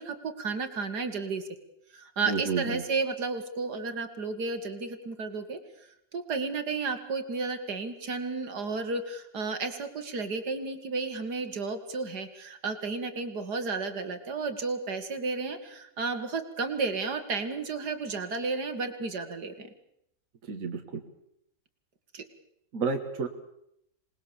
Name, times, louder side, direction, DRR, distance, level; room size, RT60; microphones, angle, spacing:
voice 1, 0.0-1.4 1.9-5.6 6.1-19.7 22.1-22.2, right 4 dB, 70° right, 8 dB, 2.5 m, -32 dB
voice 2, 2.3-2.8 20.5-21.0 22.7-23.3, right 4 dB, 50° right, 4 dB, 1.9 m, -30 dB
26.5 x 20.0 x 7.1 m, 0.77 s
omnidirectional pair, 1.8 m